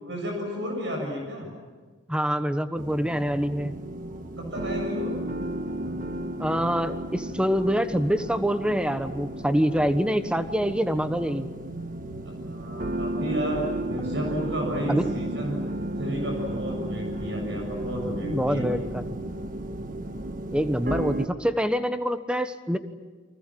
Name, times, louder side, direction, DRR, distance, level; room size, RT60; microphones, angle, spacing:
voice 1, 0.0-1.5 4.4-5.1 12.2-13.6 13.9-15.6 16.0-18.7, equal, 65° right, 1 dB, 7.3 m, -32 dB
voice 2, 2.1-3.8 6.4-11.5 14.9-15.1 18.3-19.0 20.5-22.8, equal, 5° right, 9 dB, 1.2 m, -25 dB
sound 1, 2.8-21.3, right 1 dB, 45° right, 1.5 m, -33 dB
29.5 x 24.5 x 7.6 m, 1.4 s
head